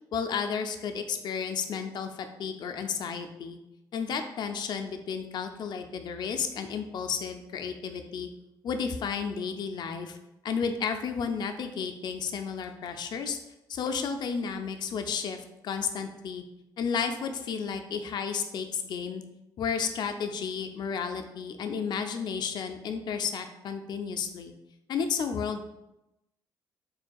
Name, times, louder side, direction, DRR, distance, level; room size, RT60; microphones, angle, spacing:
voice 1, 0.1-3.6 3.9-8.3 8.6-10.2 10.4-13.4 13.7-16.4 16.8-19.2 19.6-24.5 24.9-25.6, left 6 dB, 60° left, 7 dB, 0.4 m, -32 dB
4.4 x 3.2 x 2.3 m, 0.93 s
cardioid pair, 90°, 8 cm